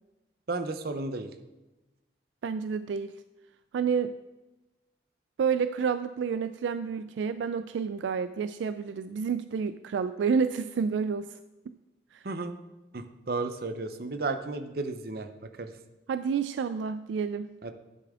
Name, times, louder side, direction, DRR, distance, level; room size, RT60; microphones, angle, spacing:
voice 1, 0.5-1.3 12.2-12.6 12.9-15.3 15.6-15.7 17.6-17.7, right 3 dB, 55° right, 8 dB, 0.7 m, -33 dB
voice 2, 2.4-3.1 3.7-4.1 5.4-11.4 12.1-12.2 16.1-17.5, right 6 dB, 85° right, 12 dB, 0.3 m, -29 dB
11.5 x 6.8 x 3.7 m, 1.1 s
head